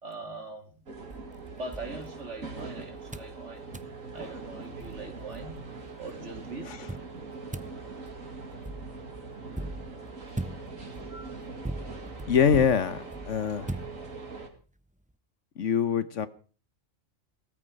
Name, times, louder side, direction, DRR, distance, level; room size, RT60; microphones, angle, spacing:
voice 1, 0.0-0.8 1.4-3.6 4.1-5.6 6.0-6.8, right 3 dB, 60° right, 3.1 m, -41 dB
sound 1, 0.9-14.5, right 3 dB, 80° right, 3.0 m, -42 dB
sound 2, 1.1-2.7 3.1-3.4 3.7-4.0 4.5-4.6 4.8-5.9 6.9-14.5, right 1 dB, 10° right, 0.4 m, -40 dB
voice 2, 12.3-13.7 15.6-16.3, left 7 dB, 70° left, 1.3 m, -24 dB
17.5 x 14.0 x 5.4 m
omnidirectional pair, 1.4 m